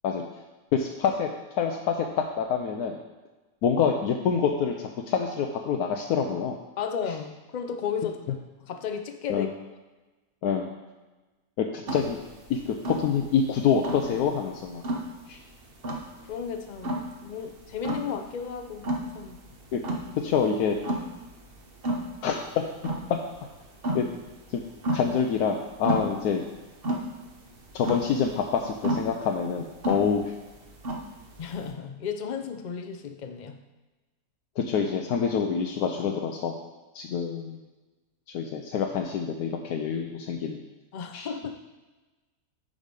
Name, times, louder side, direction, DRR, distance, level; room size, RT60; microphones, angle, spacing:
voice 1, 0.7-1.3 1.6-2.1 2.4-3.0 3.6-6.6 9.3-9.5 10.4-10.7 11.6-12.2 12.5-14.8 15.3-15.4 19.7-19.8 20.2-20.8 22.2-22.4 23.9-24.1 24.5-24.6 24.9-26.4 27.7-30.2 34.6-36.5 36.9-37.6 38.3-40.6 41.1-41.3, left 6 dB, 80° left, 2 dB, 1.2 m, -26 dB
voice 2, 6.8-8.2 8.6-9.5 16.2-19.4 31.4-33.6 37.1-37.2 40.9-41.5, left 7 dB, 55° left, 6 dB, 0.5 m, -34 dB
sound 1, 11.9-31.7, right 1 dB, 40° right, 1.1 m, -33 dB
9.5 x 5.0 x 5.3 m, 1.2 s
omnidirectional pair, 1.6 m